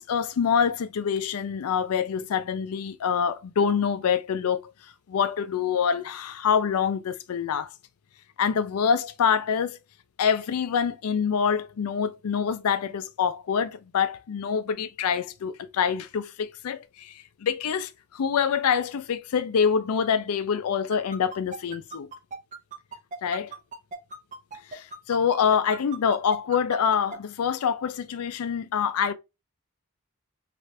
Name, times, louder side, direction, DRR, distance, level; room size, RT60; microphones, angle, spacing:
voice 1, 0.0-4.6 5.1-7.7 8.4-9.8 10.2-22.1 23.2-23.5 24.7-29.1, left 7 dB, 90° left, 0.4 m, -26 dB
sound 1, 20.9-27.2, right 3 dB, 35° right, 0.5 m, -38 dB
3.3 x 2.5 x 2.6 m
head